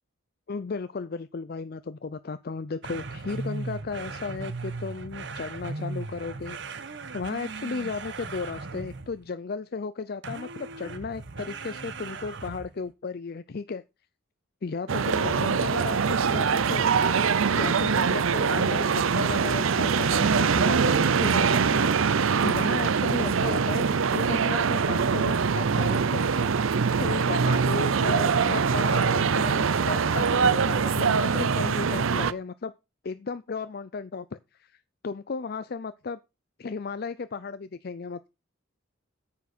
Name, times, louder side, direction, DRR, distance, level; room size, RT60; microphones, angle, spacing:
voice 1, 0.5-6.8 7.1-13.8 14.6-16.9 17.5-21.9 22.4-26.3 27.0-32.7 33.0-36.2 36.6-38.3, left 4 dB, 45° left, 0.4 m, -35 dB
sound 1, 2.8-9.3 10.2-12.8, right 3 dB, 55° right, 1.0 m, -37 dB
sound 2, 14.9-32.3, right 5 dB, 75° right, 0.6 m, -23 dB
9.3 x 5.8 x 6.0 m
head